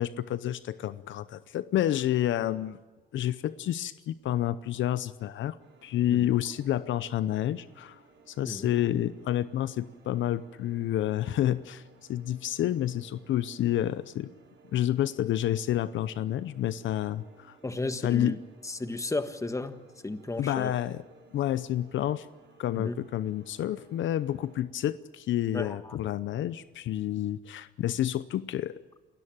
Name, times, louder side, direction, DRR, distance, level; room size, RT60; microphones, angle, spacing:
voice 1, 0.0-2.8 3.1-5.6 5.8-8.0 8.3-11.8 12.1-14.3 14.7-17.6 18.0-18.4 20.4-21.0 21.3-22.3 22.6-28.8, left 12 dB, 75° left, 15 dB, 0.8 m, -29 dB
sound 1, 5.6-24.6, right 3 dB, 80° right, 5.8 m, -58 dB
voice 2, 17.6-18.4 18.6-20.7 22.7-23.0 25.5-26.0, left 2 dB, 15° left, 10 dB, 1.5 m, -34 dB
28.5 x 13.5 x 8.9 m, 1.3 s
cardioid pair, 90°, 20 cm